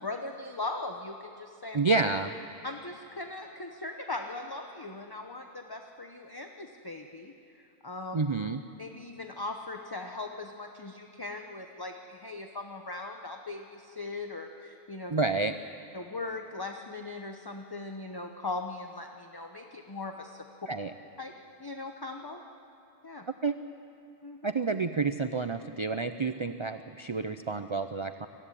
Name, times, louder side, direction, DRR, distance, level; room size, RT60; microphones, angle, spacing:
voice 1, 0.0-1.8 2.6-8.2 8.8-15.1 15.9-20.7 21.2-21.3 21.6-22.4 23.0-23.3 24.2-24.4, left 2 dB, 20° left, 4 dB, 0.8 m, -39 dB
voice 2, 1.7-2.3 8.1-8.6 15.1-15.5 20.7-20.9 23.4-23.6 24.4-28.3, right 3 dB, 40° right, 9 dB, 0.4 m, -29 dB
21.5 x 16.0 x 10.0 m, 2.7 s
omnidirectional pair, 1.3 m